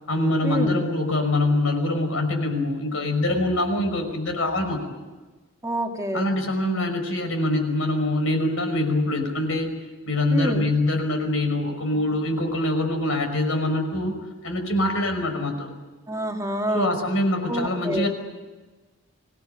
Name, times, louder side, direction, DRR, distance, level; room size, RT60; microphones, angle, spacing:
voice 1, 0.1-4.9 6.1-9.7 10.1-14.2 14.4-15.7 16.7-18.1, left 1 dB, 70° left, 5 dB, 5.6 m, -24 dB
voice 2, 5.6-6.2 10.3-10.6 16.1-17.0 17.5-18.1, right 1 dB, 15° right, 3 dB, 1.8 m, -27 dB
25.5 x 18.0 x 9.3 m, 1.2 s
head